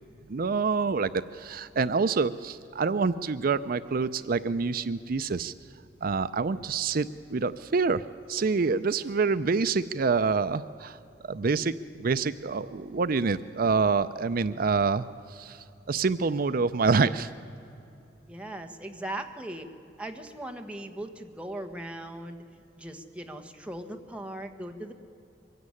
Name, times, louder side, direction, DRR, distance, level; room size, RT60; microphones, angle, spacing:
voice 1, 0.3-5.5 6.0-8.0 8.3-11.0 11.2-11.7 12.0-15.0 15.3-17.3, right 4 dB, 50° right, 13 dB, 0.5 m, -26 dB
voice 2, 18.3-19.7 20.0-22.4 22.8-24.9, right 1 dB, 5° right, 4 dB, 1.5 m, -39 dB
23.5 x 16.0 x 9.9 m, 2.7 s
head